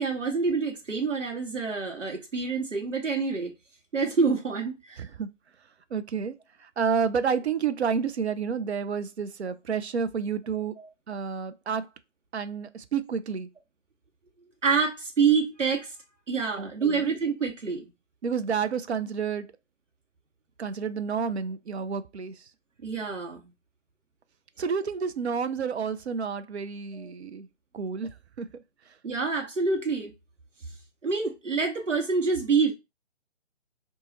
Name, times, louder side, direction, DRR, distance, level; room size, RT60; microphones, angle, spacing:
voice 1, 0.0-3.5 3.9-5.1 10.8-10.9 14.6-15.9 16.3-17.9 22.8-23.4 29.0-30.1 31.0-32.7, right 5 dB, 80° right, 1.0 m, -27 dB
voice 2, 5.0-5.3 5.9-10.7 11.1-11.9 12.3-13.5 16.6-17.1 18.2-19.5 20.6-22.5 24.6-27.5 27.7-28.5 28.9-29.0, right 6 dB, 65° right, 0.5 m, -30 dB
2.9 x 2.3 x 4.0 m
figure-of-eight pair, 145°, 36 cm